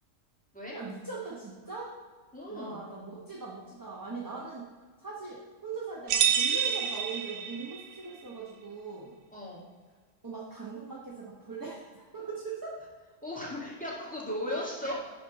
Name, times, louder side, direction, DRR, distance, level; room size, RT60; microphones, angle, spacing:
voice 1, 0.7-1.9 2.5-4.7 5.0-9.2 10.2-12.8, right 4 dB, 15° right, -4 dB, 1.0 m, -40 dB
voice 2, 2.3-2.8 9.3-9.7 13.2-14.9, left 1 dB, 5° left, -5 dB, 2.0 m, -36 dB
sound 1, 6.1-7.9, right 8 dB, 90° right, 1.1 m, -28 dB
11.5 x 4.3 x 4.1 m, 1.5 s
omnidirectional pair, 1.3 m